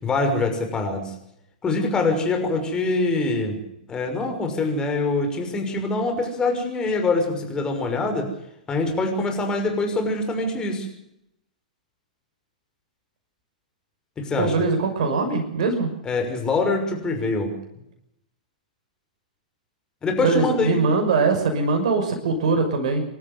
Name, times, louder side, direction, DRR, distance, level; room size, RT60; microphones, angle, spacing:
voice 1, 0.0-1.1 1.6-3.6 3.9-8.3 8.7-10.9 14.2-14.5 16.0-17.5 20.0-20.8, left 3 dB, 15° left, 4 dB, 6.0 m, -24 dB
voice 2, 14.4-15.9 20.1-23.0, right 4 dB, 55° right, 4 dB, 6.2 m, -22 dB
27.0 x 13.5 x 8.2 m, 0.78 s
figure-of-eight pair, 105°, 4 cm